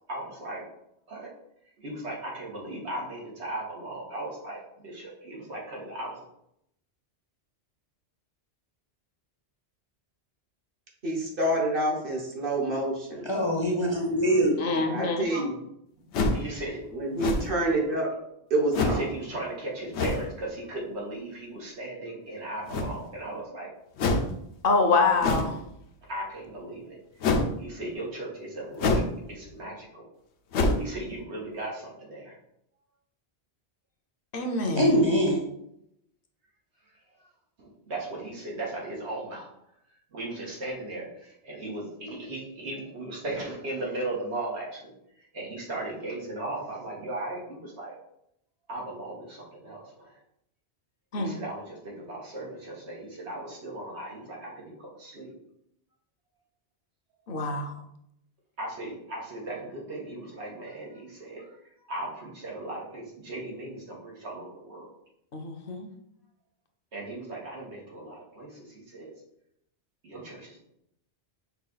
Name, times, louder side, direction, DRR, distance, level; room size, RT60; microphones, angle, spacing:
voice 1, 0.1-0.6 1.1-1.3 1.8-6.2 16.3-16.8 18.7-23.7 26.1-27.0 27.6-30.0 30.8-32.4 37.9-39.5 40.1-44.9 45.3-47.9 48.7-50.2 51.1-55.3 58.6-61.5 61.9-64.9 66.9-69.1 70.0-70.6, right 2 dB, 85° right, -3 dB, 1.6 m, -37 dB
voice 2, 11.0-13.3 14.7-15.6 16.9-18.1 18.5-19.0, right 1 dB, 55° right, -1 dB, 1.2 m, -27 dB
voice 3, 13.2-14.6 34.7-35.4, equal, 30° left, -1 dB, 0.5 m, -23 dB
voice 4, 14.6-15.3 24.6-25.6 34.3-34.9 51.1-51.4 57.3-57.7 65.3-65.9, left 3 dB, 60° left, 4 dB, 0.8 m, -26 dB
sound 1, 16.1-16.5 17.2-17.7 18.7-19.1 19.9-20.3 22.7-23.2 24.0-24.3 25.2-25.6 27.2-27.5 28.8-29.2 29.5-29.6 30.5-30.9, left 3 dB, 85° left, 0.9 m, -26 dB
5.7 x 2.4 x 3.9 m, 0.77 s
omnidirectional pair, 1.1 m